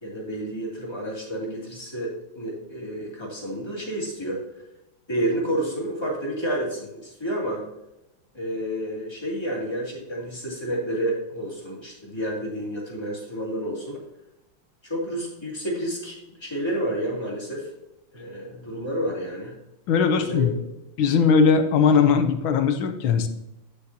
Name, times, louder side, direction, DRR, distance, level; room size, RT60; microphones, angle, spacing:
voice 1, 0.0-4.4 5.1-7.6 8.3-14.0 14.8-17.7 18.1-19.5 20.1-20.5, right 1 dB, 10° left, -5 dB, 2.5 m, -30 dB
voice 2, 19.9-20.5 21.0-23.3, left 6 dB, 75° left, 8 dB, 1.5 m, -19 dB
9.4 x 6.6 x 2.8 m, 0.91 s
omnidirectional pair, 2.3 m